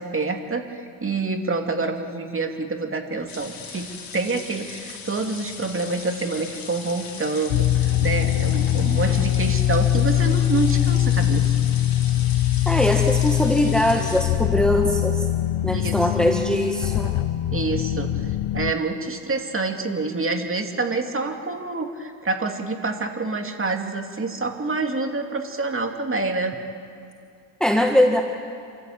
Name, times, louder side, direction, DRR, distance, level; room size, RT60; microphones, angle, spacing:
voice 1, 0.0-11.5 15.7-16.3 17.5-26.6, right 3 dB, 25° right, 4 dB, 2.6 m, -27 dB
sound 1, 3.3-14.2, left 5 dB, 45° left, 4.1 m, -39 dB
sound 2, 7.5-18.7, left 13 dB, 70° left, 0.8 m, -22 dB
voice 2, 12.6-15.3 15.6-17.1 27.6-28.2, left 1 dB, ahead, 2 dB, 1.6 m, -21 dB
27.5 x 14.0 x 8.7 m, 2.5 s
cardioid pair, 95°, 48 cm